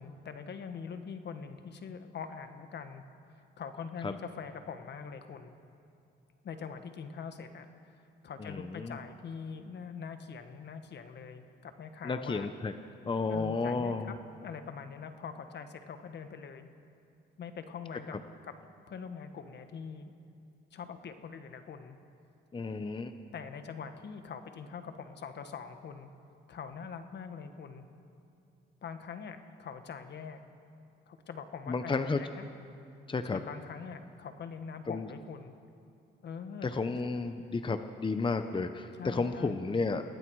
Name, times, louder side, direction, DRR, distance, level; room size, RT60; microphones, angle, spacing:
voice 1, 0.0-3.0 3.3-5.5 6.4-12.5 13.3-14.2 14.4-16.7 17.4-18.1 18.4-18.5 18.9-20.1 20.7-22.0 23.3-26.1 26.5-27.8 28.8-30.4 31.1-32.5 33.3-35.5 36.2-36.7 38.9-39.6, left 6 dB, 60° left, 8 dB, 1.5 m, -43 dB
voice 2, 8.4-9.0 12.0-12.7 13.0-14.1 22.5-23.1 31.7-32.2 33.1-33.4 34.9-35.1 36.6-40.0, left 4 dB, 25° left, 9 dB, 0.9 m, -32 dB
29.0 x 19.0 x 4.8 m, 2.6 s
cardioid pair, 90°, 20 cm